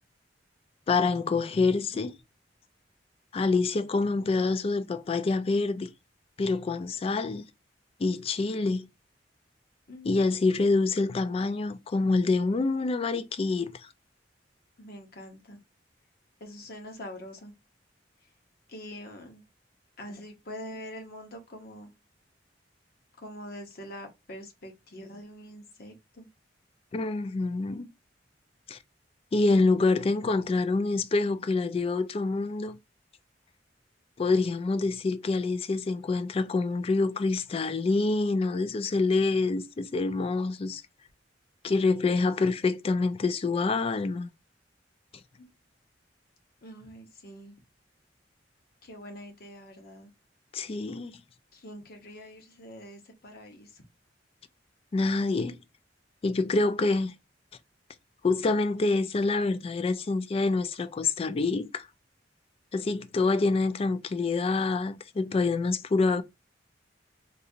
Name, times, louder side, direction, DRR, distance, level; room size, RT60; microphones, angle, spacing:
voice 1, 0.9-2.1 3.3-5.9 6.4-7.4 8.0-8.9 10.0-13.7 26.9-27.9 28.7-28.8 29.3-32.8 34.2-40.8 41.6-44.3 50.5-51.2 54.9-55.6 56.2-57.1 58.2-61.9 62.7-66.2, left 3 dB, 30° left, 0.3 m, -26 dB
voice 2, 9.9-10.3 14.8-15.6 16.4-17.5 18.2-18.3 18.7-19.4 20.0-21.9 23.2-26.3 45.4-45.5 46.6-47.5 48.8-50.1 51.5-53.8, equal, 55° left, 0.9 m, -44 dB
3.9 x 2.5 x 2.7 m
head